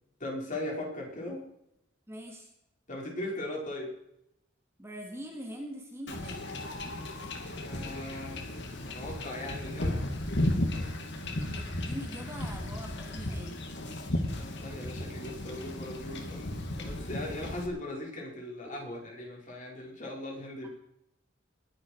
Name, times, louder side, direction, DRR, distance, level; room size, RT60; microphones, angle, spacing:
voice 1, 0.2-1.5 2.9-3.9 7.6-8.5 8.8-10.0 14.3-20.7, left 1 dB, 40° left, -2 dB, 5.6 m, -39 dB
voice 2, 2.1-2.5 4.8-6.5 11.5-13.6 18.1-18.2 18.6-18.7, equal, 15° right, 1 dB, 2.5 m, -43 dB
Wind / Ocean / Boat Water vehicle, 6.1-17.7, left 1 dB, 60° left, 2.5 m, -35 dB
21.5 x 10.5 x 4.9 m, 0.78 s
head